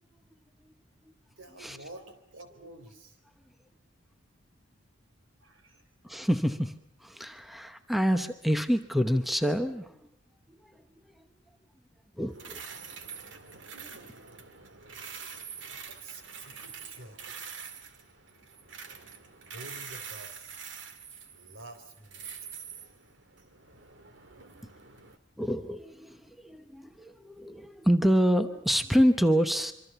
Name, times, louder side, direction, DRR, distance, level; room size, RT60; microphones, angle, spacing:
voice 1, 1.4-3.2 5.4-5.9 13.7-14.2 15.7-17.4 19.5-20.6 21.3-22.3, right 1 dB, 80° right, 8 dB, 4.1 m, -49 dB
voice 2, 6.0-10.0 10.6-10.8 11.2-11.3 12.2-12.6 25.4-29.7, equal, ahead, 9 dB, 1.0 m, -27 dB
sound 1, 12.3-25.2, right 6 dB, 65° right, 2.0 m, -45 dB
26.0 x 25.0 x 6.9 m, 0.71 s
head